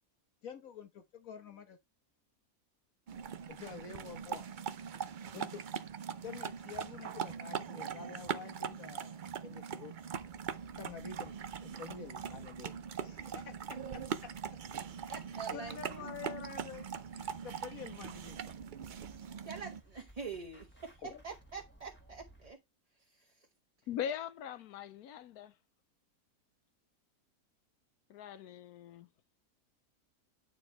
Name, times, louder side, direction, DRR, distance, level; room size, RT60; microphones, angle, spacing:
voice 1, 0.4-1.8 3.5-4.5 5.3-5.6 6.2-10.0 10.8-11.4 11.6-14.3 15.5-16.9 17.1-18.4 21.0-21.2, left 7 dB, 65° left, 1.7 m, -48 dB
sound 1, 3.1-19.8, right 7 dB, 65° right, 0.4 m, -41 dB
sound 2, 10.2-22.5, right 2 dB, 5° left, 1.8 m, -60 dB
voice 2, 15.1-16.0 19.4-22.6 23.1-23.3, right 5 dB, 30° right, 1.0 m, -45 dB
voice 3, 23.9-25.5 28.1-29.1, left 9 dB, 85° left, 1.2 m, -41 dB
8.9 x 4.6 x 4.5 m
omnidirectional pair, 1.6 m